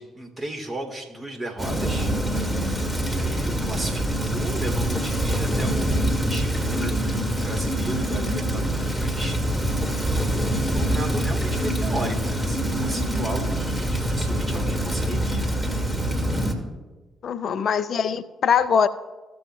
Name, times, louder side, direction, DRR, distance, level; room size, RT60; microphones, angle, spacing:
voice 1, 0.0-2.1 3.0-9.6 10.3-15.5, right 1 dB, 30° right, 2 dB, 2.8 m, -35 dB
Rain, 1.6-16.5, right 1 dB, 5° right, 2.0 m, -25 dB
voice 2, 17.2-18.9, left 7 dB, 55° left, 13 dB, 0.4 m, -22 dB
16.0 x 7.1 x 2.3 m, 1.2 s
figure-of-eight pair, 40°, 0 cm